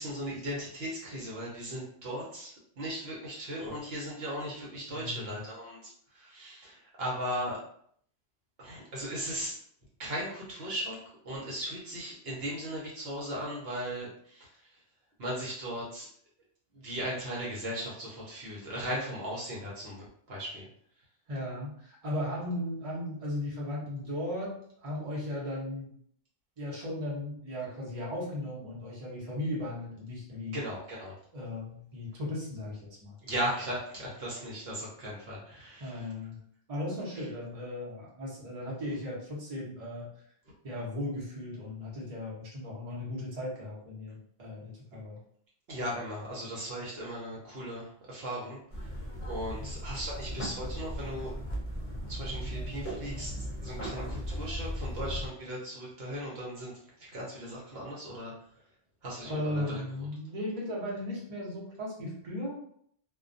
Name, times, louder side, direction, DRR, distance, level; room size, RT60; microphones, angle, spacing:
voice 1, 0.0-7.6 8.6-9.6 10.0-14.7 15.2-16.1 16.7-20.7 30.5-31.2 33.2-36.0 37.2-37.3 44.9-45.0 45.7-48.9 49.2-51.3 52.1-53.3 53.6-58.3 59.0-59.8, equal, 70° right, -4 dB, 0.9 m, -37 dB
voice 2, 4.9-5.4 21.3-25.9 26.6-30.6 31.3-33.2 35.8-36.4 36.7-40.1 40.6-45.2 49.6-49.7 59.3-62.6, left 1 dB, 40° right, -6 dB, 0.8 m, -36 dB
sound 1, 48.7-55.3, equal, 40° left, 0.6 m, -37 dB
2.2 x 2.2 x 2.5 m, 0.65 s
omnidirectional pair, 1.1 m